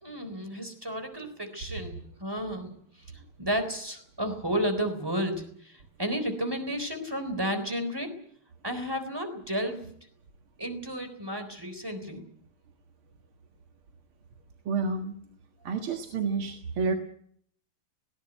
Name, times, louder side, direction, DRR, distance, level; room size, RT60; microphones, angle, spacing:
voice 1, 0.0-2.8 3.4-8.1 8.6-9.9 10.6-12.2, equal, 10° right, 8 dB, 3.8 m, -32 dB
voice 2, 14.7-15.1 15.6-16.9, right 4 dB, 70° right, 4 dB, 2.6 m, -29 dB
19.0 x 19.0 x 9.1 m, 0.64 s
omnidirectional pair, 2.4 m